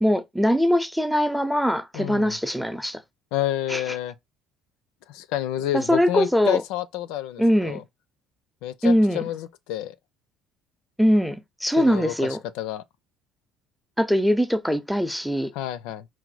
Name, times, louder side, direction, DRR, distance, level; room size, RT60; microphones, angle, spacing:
voice 1, 0.0-3.0 3.7-3.9 5.7-6.6 7.4-7.8 8.8-9.2 11.0-12.4 14.0-15.5, equal, ahead, 0.6 m, -22 dB
voice 2, 1.9-2.4 3.3-4.1 5.1-7.8 8.6-9.9 11.8-12.1 12.5-12.8 15.5-16.1, left 12 dB, 70° left, 0.4 m, -29 dB
4.7 x 2.2 x 4.1 m
hypercardioid pair, 60°, 0 cm